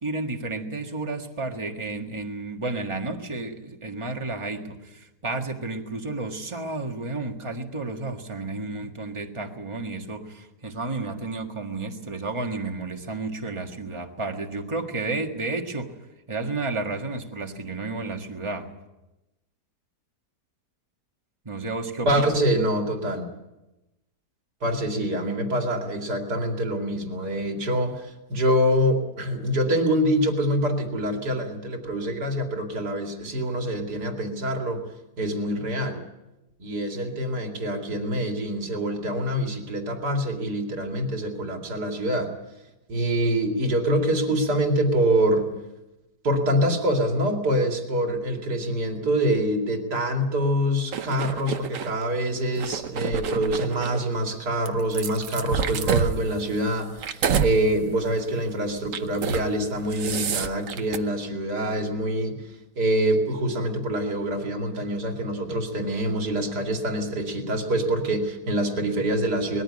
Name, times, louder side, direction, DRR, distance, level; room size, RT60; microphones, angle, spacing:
voice 1, 0.0-15.9 16.3-18.7 21.4-22.1, right 3 dB, 20° right, 3 dB, 1.6 m, -32 dB
voice 2, 22.0-23.3 24.6-34.8 35.2-36.0 36.6-42.3 42.9-45.5 46.2-69.6, right 1 dB, 70° right, 3 dB, 3.1 m, -25 dB
sound 1, 50.9-51.9 52.5-54.0 54.7-57.5 58.0-58.2 58.8-59.5 59.8-61.0, right 7 dB, 55° right, 1.2 m, -28 dB
20.5 x 14.5 x 9.8 m, 1.0 s
omnidirectional pair, 1.8 m